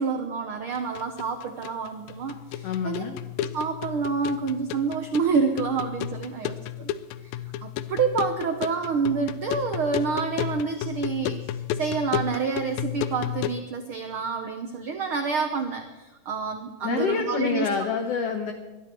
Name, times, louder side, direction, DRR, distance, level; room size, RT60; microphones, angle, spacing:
voice 1, 0.0-3.0 3.4-6.9 7.6-17.7, right 5 dB, 85° right, 6 dB, 1.2 m, -28 dB
sound 1, 0.7-13.6, left 11 dB, 90° left, 2.4 m, -33 dB
voice 2, 2.6-3.2 16.8-18.5, left 6 dB, 65° left, 6 dB, 1.7 m, -27 dB
21.5 x 13.0 x 4.6 m, 1.2 s
omnidirectional pair, 4.0 m